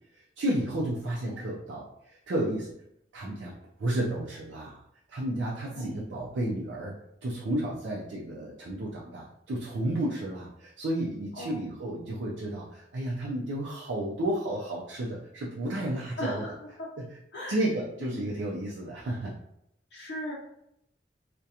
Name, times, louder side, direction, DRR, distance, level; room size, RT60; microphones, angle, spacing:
voice 1, 0.4-2.7 3.1-4.8 5.1-16.4 17.0-17.1 17.5-19.4, right 1 dB, 80° right, -3 dB, 0.4 m, -32 dB
voice 2, 1.1-1.4 5.7-6.1 11.4-11.7 16.2-16.9 17.3-17.6 18.0-18.3 19.9-20.3, left 1 dB, 60° left, -5 dB, 0.5 m, -38 dB
2.7 x 2.2 x 2.4 m, 0.77 s
head